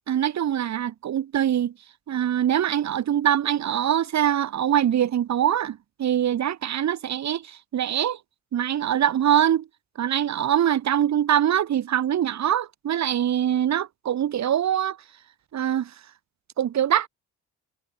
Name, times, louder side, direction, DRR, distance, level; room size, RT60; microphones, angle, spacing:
voice 1, 0.1-1.7 2.1-8.2 8.5-9.7 10.0-15.0 15.5-15.9 16.6-17.1, right 10 dB, 65° right, 3.7 m, -23 dB
cardioid pair, 90°, 30 cm